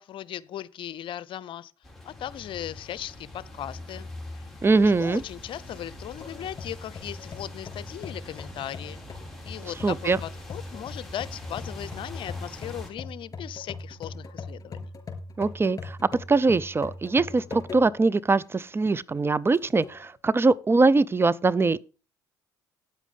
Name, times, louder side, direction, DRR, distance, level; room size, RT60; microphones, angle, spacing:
voice 1, 0.0-1.7 2.0-4.1 4.3-4.5 5.0-9.0 9.4-14.9, left 11 dB, 55° left, 0.7 m, -38 dB
sound 1, 1.8-12.9, left 2 dB, ahead, 3.9 m, -43 dB
voice 2, 4.6-5.2 9.8-10.2 15.4-16.0 16.3-21.8, right 3 dB, 20° right, 0.6 m, -22 dB
sound 2, 6.2-18.1 18.6-18.7 19.4-20.0, left 3 dB, 35° left, 4.2 m, -41 dB
9.3 x 8.3 x 5.5 m
hypercardioid pair, 65°, 10 cm